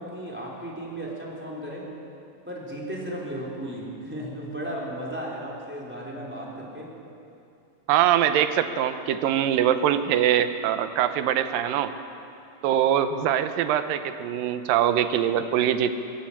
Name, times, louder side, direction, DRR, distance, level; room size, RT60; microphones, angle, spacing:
voice 1, 0.0-1.9 2.5-7.0, right 1 dB, 5° right, -4 dB, 3.6 m, -35 dB
voice 2, 7.9-11.9 12.6-16.0, right 10 dB, 85° right, 10 dB, 2.6 m, -23 dB
21.0 x 14.5 x 8.8 m, 2.7 s
omnidirectional pair, 3.9 m